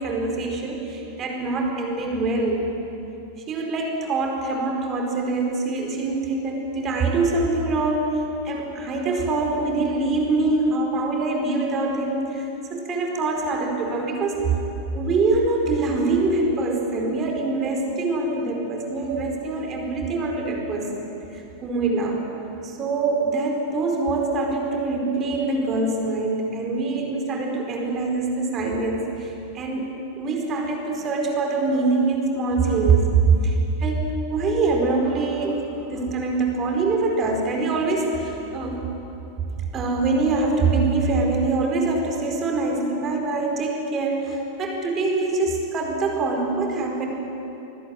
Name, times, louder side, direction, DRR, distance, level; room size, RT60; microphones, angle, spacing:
voice 1, 0.0-2.8 3.5-14.6 14.9-22.2 22.6-29.9 30.2-38.8 39.7-47.1, right 3 dB, 30° right, 1 dB, 4.6 m, -24 dB
25.0 x 20.0 x 9.2 m, 3.0 s
figure-of-eight pair, 90°, 0 cm